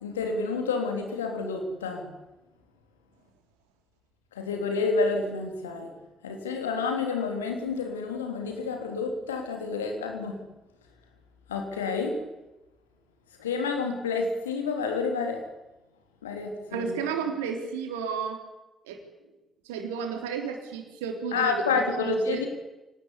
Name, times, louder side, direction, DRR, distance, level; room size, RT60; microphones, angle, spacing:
voice 1, 0.0-2.1 4.3-5.9 6.2-10.4 11.5-12.2 13.4-15.4 16.2-17.0 21.3-22.5, left 4 dB, 80° left, 4 dB, 3.3 m, -29 dB
voice 2, 16.7-18.4 18.9-19.0 19.6-22.5, right 6 dB, 70° right, 4 dB, 3.6 m, -32 dB
25.5 x 18.5 x 9.9 m, 1.0 s
figure-of-eight pair, 40°, 0 cm